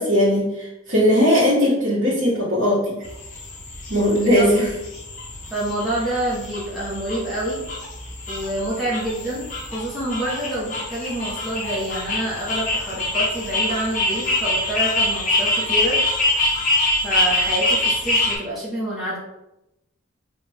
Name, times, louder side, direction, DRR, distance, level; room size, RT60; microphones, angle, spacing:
voice 1, 0.0-2.9 3.9-4.7, equal, 85° right, -9 dB, 1.4 m, -18 dB
sound 1, 3.0-18.4, left 2 dB, 40° left, 0.9 m, -25 dB
voice 2, 5.5-7.6 8.3-9.4 9.7-16.0 17.0-19.2, right 1 dB, ahead, -10 dB, 1.1 m, -27 dB
4.3 x 2.5 x 3.5 m, 0.91 s
head